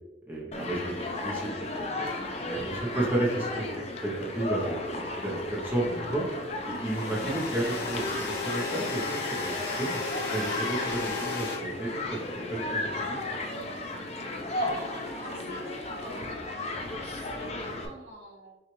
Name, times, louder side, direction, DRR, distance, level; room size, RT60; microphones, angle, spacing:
voice 1, 0.3-1.5 2.0-6.2 6.6-10.0 10.3-13.2, right 1 dB, 10° right, -4 dB, 0.7 m, -32 dB
Human group actions, 0.5-17.9, left 2 dB, 35° left, 0.5 m, -34 dB
sound 1, 2.1-2.2 6.7-11.6, left 4 dB, 65° left, 1.0 m, -34 dB
voice 2, 14.2-18.6, right 1 dB, 75° right, -3 dB, 1.3 m, -48 dB
5.8 x 2.4 x 3.0 m, 1.1 s
head